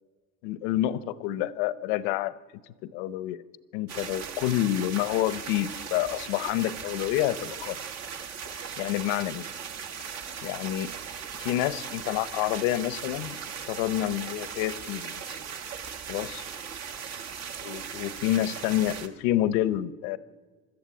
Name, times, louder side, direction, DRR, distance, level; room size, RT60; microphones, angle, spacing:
voice 1, 0.4-2.3 2.8-3.4 3.7-7.8 8.5-9.4 10.4-10.9 11.4-13.4 13.7-15.4 16.1-16.4 17.6-20.2, left 14 dB, 85° left, 17 dB, 0.9 m, -28 dB
sound 1, 3.9-19.1, right 7 dB, 45° right, 1.6 m, -38 dB
24.5 x 13.0 x 8.4 m, 1.4 s
cardioid pair, 150°, 36 cm